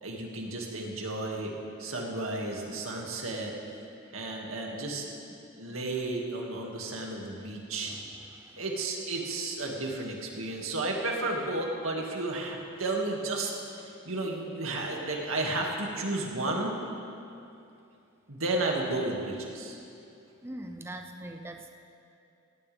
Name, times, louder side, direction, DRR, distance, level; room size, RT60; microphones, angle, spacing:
voice 1, 0.0-1.5 1.8-3.5 4.1-5.0 5.6-7.9 8.6-16.7 18.3-19.8, right 2 dB, 80° right, -1 dB, 2.3 m, -33 dB
voice 2, 5.4-5.8 7.8-8.6 20.4-21.7, right 1 dB, 10° right, 4 dB, 0.5 m, -43 dB
18.0 x 16.0 x 3.5 m, 2.6 s
head